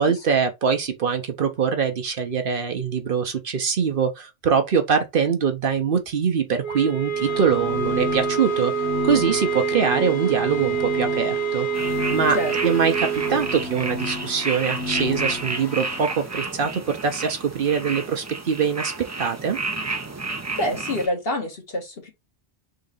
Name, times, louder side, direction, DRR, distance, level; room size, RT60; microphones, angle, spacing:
voice 1, 0.0-8.7 9.0-12.4 12.6-18.9 19.2-19.6, right 6 dB, 55° right, 0.9 m, -23 dB
sound 1, 6.6-13.6, right 7 dB, 30° left, 0.9 m, -26 dB
sound 2, 7.1-16.2, left 2 dB, 85° left, 1.8 m, -32 dB
sound 3, 11.7-21.1, right 3 dB, 25° right, 0.4 m, -31 dB
voice 2, 20.6-22.1, left 1 dB, 60° left, 1.7 m, -27 dB
3.9 x 3.1 x 3.8 m
omnidirectional pair, 1.1 m